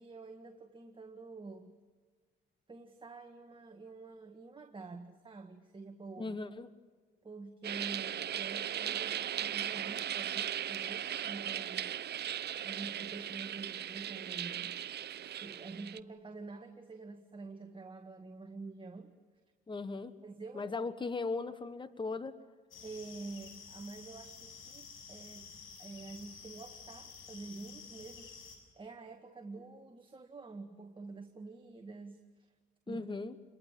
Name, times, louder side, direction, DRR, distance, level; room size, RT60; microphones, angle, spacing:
voice 1, 0.0-1.7 2.7-6.4 7.2-12.3 12.6-14.8 15.3-19.1 20.2-20.7 22.8-25.5 25.8-28.4 28.8-32.5 32.9-33.0, right 3 dB, 25° right, 5 dB, 1.9 m, -48 dB
voice 2, 6.2-6.7 19.7-20.1 20.5-22.3 32.9-33.3, left 3 dB, 25° left, 13 dB, 1.4 m, -37 dB
sound 1, 7.6-16.0, right 10 dB, 55° right, 0.8 m, -38 dB
sound 2, 22.7-28.6, left 5 dB, 85° left, 6.8 m, -51 dB
28.5 x 22.5 x 7.7 m, 1.5 s
cardioid pair, 90°, 20 cm